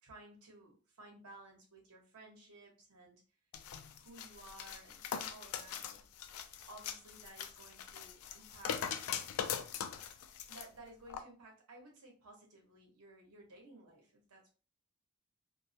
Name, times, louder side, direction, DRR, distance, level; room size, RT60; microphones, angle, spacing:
voice 1, 0.0-3.2 4.0-6.0 6.7-8.9 10.5-14.5, right 2 dB, 90° right, 1 dB, 0.8 m, -56 dB
sound 1, 3.5-10.7 11.1-11.2, left 8 dB, 75° left, 0.3 m, -41 dB
2.2 x 2.0 x 2.7 m, 0.36 s
head